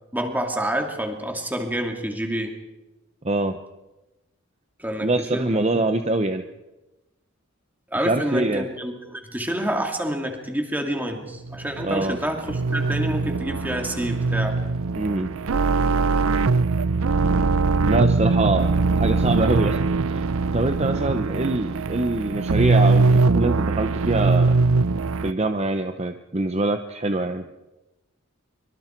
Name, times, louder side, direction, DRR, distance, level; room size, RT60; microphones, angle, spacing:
voice 1, 0.1-2.5 4.8-5.6 7.9-14.6, right 1 dB, 10° right, 3 dB, 2.6 m, -28 dB
voice 2, 3.2-3.6 5.0-6.4 8.0-8.7 11.8-12.2 15.0-15.3 17.9-19.8 20.1-20.2 20.5-24.5 25.2-27.5, right 2 dB, 30° right, 7 dB, 0.9 m, -24 dB
sound 1, 11.5-25.3, right 3 dB, 85° right, 0.6 m, -21 dB
25.0 x 24.5 x 4.6 m, 1.0 s
head